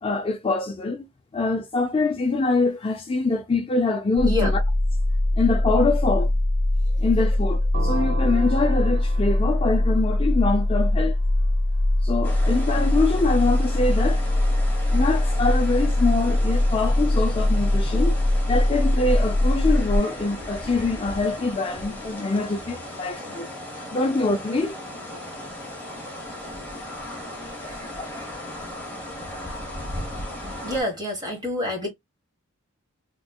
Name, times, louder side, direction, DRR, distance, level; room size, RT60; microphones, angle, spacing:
voice 1, 0.0-1.1 1.3-4.6 5.4-6.3 7.0-11.2 12.0-14.2 14.9-18.2 18.5-23.5 23.9-24.8 28.0-28.1, left 3 dB, 25° left, 0.4 m, -24 dB
sound 1, 4.2-20.0, left 1 dB, 55° left, 1.1 m, -22 dB
sound 2, 7.7-11.5, right 3 dB, 45° right, 0.5 m, -36 dB
sound 3, 12.2-30.8, left 1 dB, 10° left, 1.1 m, -37 dB
voice 2, 27.1-27.4 27.7-28.3 30.6-31.9, left 1 dB, 20° right, 1.4 m, -29 dB
3.3 x 3.0 x 2.3 m
head